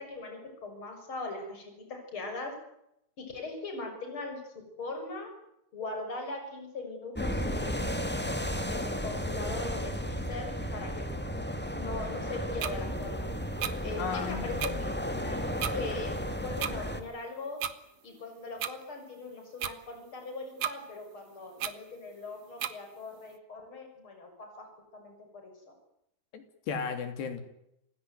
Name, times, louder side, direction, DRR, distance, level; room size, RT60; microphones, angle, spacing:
voice 1, 0.0-2.5 3.2-4.4 4.8-5.3 5.7-8.0 8.7-11.0 11.7-13.3 13.8-15.0 15.2-16.1 16.4-17.6 18.0-24.7 24.9-25.5, left 2 dB, 30° left, 4 dB, 7.2 m, -40 dB
sound 1, 7.1-17.0, equal, 10° left, 0.6 m, -34 dB
sound 2, 12.6-12.7 13.6-13.7 14.6-14.7 15.6-15.7 16.6-16.7 17.6-17.7 18.6-18.7 19.6-19.7 20.6-20.7 21.6-21.7 22.6-22.7, right 10 dB, 60° right, 1.9 m, -32 dB
voice 2, 14.0-14.7 26.3-27.4, left 6 dB, 80° left, 8 dB, 5.3 m, -35 dB
28.5 x 17.0 x 9.4 m, 0.80 s
omnidirectional pair, 4.7 m